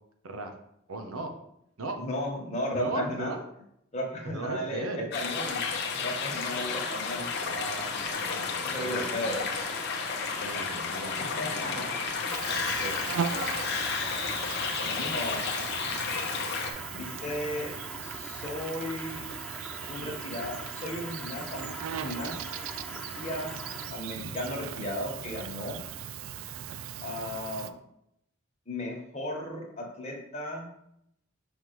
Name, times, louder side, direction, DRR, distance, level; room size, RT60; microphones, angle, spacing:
voice 1, 0.9-1.3 1.8-2.0 2.7-3.4 4.2-5.1 7.4-9.3 10.4-12.0 12.5-13.1, right 2 dB, 90° right, 5 dB, 0.9 m, -37 dB
voice 2, 2.0-3.3 3.9-5.6 5.9-7.3 8.6-9.5 11.2-12.0 14.8-15.4 16.9-17.7 18.0-19.3 19.9-21.7 22.0-22.4 23.1-23.6 23.9-25.8 27.0-27.7 28.7-30.7, left 1 dB, 35° left, -1 dB, 1.3 m, -35 dB
sound 1, 5.1-16.7, left 5 dB, 55° left, 0.8 m, -32 dB
sound 2, 6.4-23.9, left 1 dB, 5° left, 0.5 m, -43 dB
Insect, 12.3-27.7, right 8 dB, 70° right, 0.3 m, -38 dB
5.9 x 5.2 x 3.1 m, 0.77 s
head